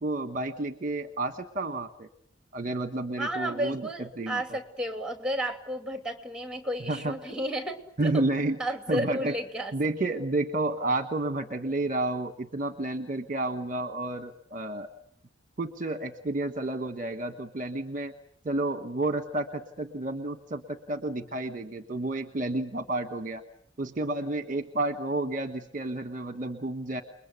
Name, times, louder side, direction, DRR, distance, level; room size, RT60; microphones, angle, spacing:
voice 1, 0.0-2.1 2.5-3.8 4.2-4.4 6.9-7.1 8.0-8.6 8.9-9.3 9.7-14.9 15.6-18.1 18.4-23.4 23.8-27.0, right 2 dB, 35° right, 9 dB, 1.2 m, -30 dB
voice 2, 3.2-8.2 8.6-9.7, equal, 5° right, 6 dB, 2.8 m, -32 dB
29.5 x 21.5 x 8.3 m, 0.63 s
head